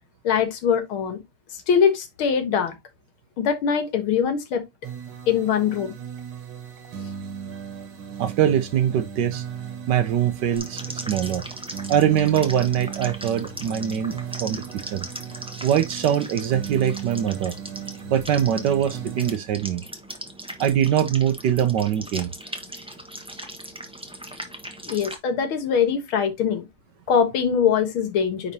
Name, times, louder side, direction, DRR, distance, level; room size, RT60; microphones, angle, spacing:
voice 1, 0.2-1.2 1.7-2.8 3.4-4.6 5.3-5.9 24.9-26.7 27.1-28.5, left 7 dB, 85° left, 2.1 m, -22 dB
sound 1, 4.8-19.3, right 7 dB, 85° right, 2.1 m, -37 dB
voice 2, 8.2-9.4 9.9-11.4 11.9-15.1 15.6-17.5 18.1-19.8 20.6-22.3, right 9 dB, 70° right, 1.1 m, -22 dB
sound 2, 10.5-25.2, equal, 5° right, 0.6 m, -39 dB
9.7 x 3.8 x 2.8 m
omnidirectional pair, 2.2 m